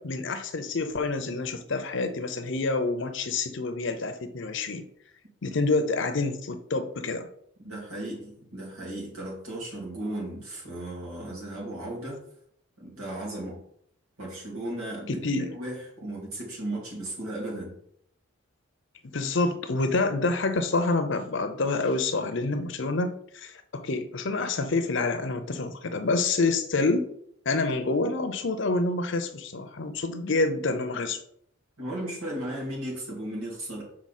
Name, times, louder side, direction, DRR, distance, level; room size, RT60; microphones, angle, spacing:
voice 1, 0.0-4.9 5.4-7.3 15.1-15.5 19.0-27.1 27.5-31.2, left 3 dB, 55° left, 9 dB, 0.6 m, -27 dB
voice 2, 7.6-12.2 12.8-13.6 14.2-15.2 15.5-17.8 31.8-33.8, right 1 dB, 85° right, -3 dB, 2.8 m, -35 dB
6.1 x 4.3 x 4.2 m, 0.69 s
head